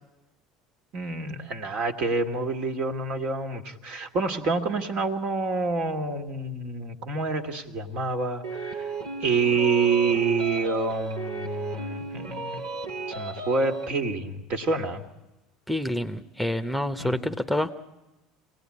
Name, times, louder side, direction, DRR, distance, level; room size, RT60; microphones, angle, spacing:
voice 1, 0.9-8.9 9.2-12.7 13.1-15.0 17.0-17.3, right 4 dB, 50° right, 5 dB, 2.2 m, -27 dB
sound 1, 8.4-13.9, right 3 dB, 85° right, 2.4 m, -35 dB
voice 2, 15.7-17.7, left 1 dB, ahead, 8 dB, 1.1 m, -27 dB
27.0 x 18.5 x 9.8 m, 1.0 s
hypercardioid pair, 75°, 2 cm